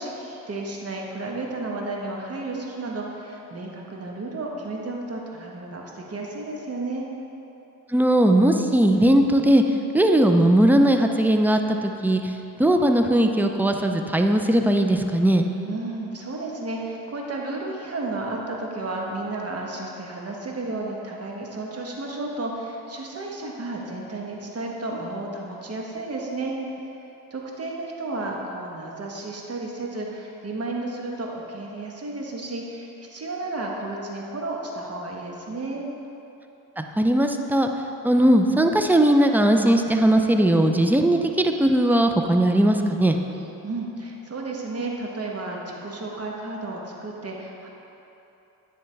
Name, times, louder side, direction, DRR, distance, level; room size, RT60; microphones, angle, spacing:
voice 1, 0.0-7.1 15.6-26.6 27.3-35.9 43.6-47.7, right 2 dB, 40° right, -1 dB, 1.2 m, -32 dB
voice 2, 7.9-9.6 9.9-12.3 12.6-15.5 36.8-37.7 38.0-43.2, right 1 dB, 5° right, 4 dB, 0.4 m, -19 dB
9.9 x 3.5 x 3.3 m, 3.0 s
supercardioid pair, 50°, 38 cm